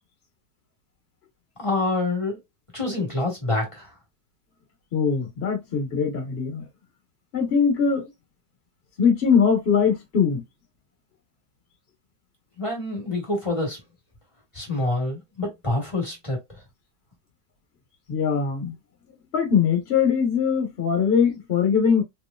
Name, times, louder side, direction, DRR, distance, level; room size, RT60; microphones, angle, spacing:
voice 1, 1.6-2.4 2.7-3.9 12.6-13.8 14.5-16.6, left 2 dB, 20° left, 1.1 m, -27 dB
voice 2, 4.9-6.7 7.3-8.1 9.0-10.4 18.1-18.7 19.3-22.0, left 6 dB, 40° left, 1.2 m, -21 dB
3.1 x 2.9 x 2.3 m
omnidirectional pair, 1.9 m